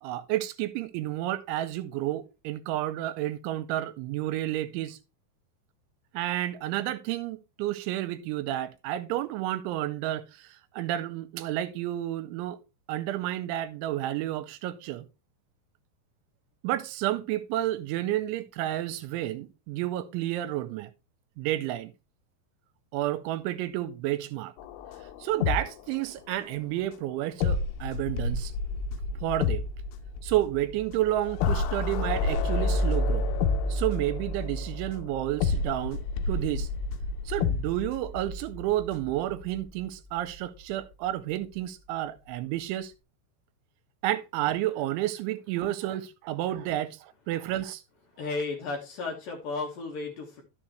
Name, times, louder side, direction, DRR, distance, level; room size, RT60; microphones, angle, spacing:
voice 1, 0.0-5.0 6.1-12.6 12.9-15.1 16.6-20.9 21.4-21.9 22.9-24.5 25.2-28.5 29.2-29.7 30.2-33.3 33.7-36.7 37.3-42.9 44.0-47.8, right 14 dB, 85° right, 2.9 m, -31 dB
sound 1, 24.6-26.4 26.6-26.7 27.4-39.9 40.2-40.3, left 3 dB, 85° left, 3.1 m, -30 dB
voice 2, 48.2-50.4, left 3 dB, 60° left, 2.7 m, -34 dB
12.0 x 6.7 x 3.1 m
omnidirectional pair, 5.5 m